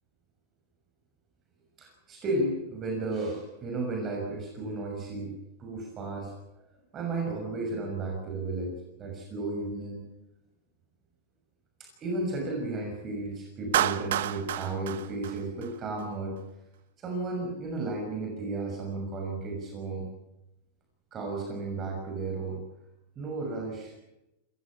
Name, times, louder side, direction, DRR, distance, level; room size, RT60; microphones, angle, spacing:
voice 1, 1.8-5.3 5.6-6.3 6.9-10.0 11.8-16.4 17.0-20.1 21.1-22.6 23.2-23.9, right 2 dB, 25° right, 1 dB, 6.4 m, -33 dB
Clapping, 13.7-16.0, right 12 dB, 75° right, 1.2 m, -30 dB
27.5 x 15.5 x 8.6 m, 0.93 s
supercardioid pair, 150°, 0 cm